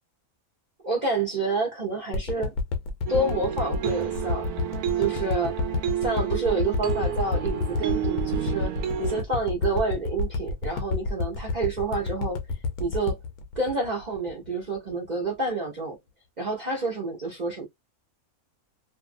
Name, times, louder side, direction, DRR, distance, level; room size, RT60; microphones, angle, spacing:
voice 1, 0.8-2.5 3.1-4.5 5.0-5.6 6.0-8.7 9.0-12.4 12.8-13.2 13.6-16.0 16.4-17.7, right 3 dB, 40° right, 0.7 m, -28 dB
sound 1, 2.1-14.5 14.9-15.0, left 4 dB, 85° left, 1.2 m, -29 dB
sound 2, 3.1-9.2, right 10 dB, 85° right, 1.1 m, -30 dB
2.6 x 2.5 x 2.5 m
omnidirectional pair, 1.5 m